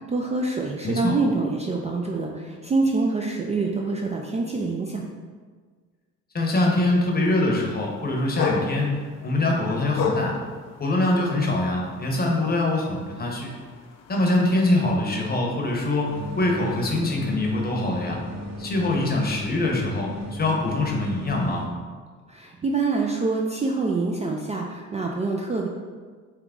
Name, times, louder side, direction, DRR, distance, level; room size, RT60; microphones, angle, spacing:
voice 1, 0.0-5.0 22.3-25.7, right 3 dB, 25° right, 0 dB, 0.3 m, -26 dB
voice 2, 0.8-1.1 6.3-10.4 10.8-13.5 14.1-18.2 18.6-21.6, left 2 dB, 30° left, 0 dB, 0.8 m, -24 dB
sound 1, 6.8-17.0, left 5 dB, 60° left, 0.5 m, -36 dB
sound 2, 16.0-21.6, left 1 dB, 60° right, 1.5 m, -36 dB
3.5 x 3.0 x 3.6 m, 1.5 s
cardioid pair, 90°, 30 cm